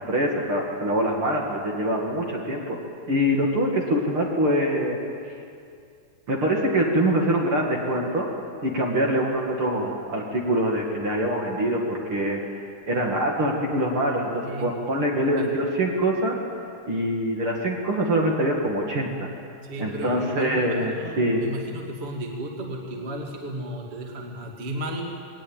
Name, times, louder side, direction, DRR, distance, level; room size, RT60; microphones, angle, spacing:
voice 1, 0.0-2.8 3.1-5.0 6.3-8.3 8.6-12.4 12.9-16.4 16.9-19.3 19.8-21.4, right 1 dB, 40° right, -1 dB, 2.6 m, -24 dB
voice 2, 14.4-14.7 15.4-15.5 19.6-25.0, right 1 dB, 20° right, 0 dB, 1.8 m, -34 dB
20.0 x 19.5 x 8.9 m, 2.4 s
omnidirectional pair, 4.3 m